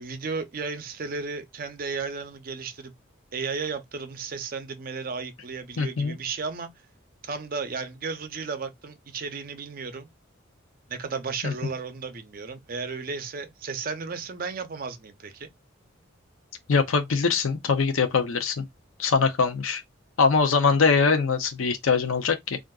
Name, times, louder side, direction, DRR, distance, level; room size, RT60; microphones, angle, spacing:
voice 1, 0.0-2.9 3.3-6.7 7.2-10.1 10.9-15.5, right 4 dB, 45° right, 0.5 m, -34 dB
voice 2, 5.8-6.2 11.4-11.5 16.7-18.6 19.0-19.8 20.2-22.6, left 5 dB, 80° left, 0.6 m, -22 dB
3.5 x 2.5 x 2.3 m
head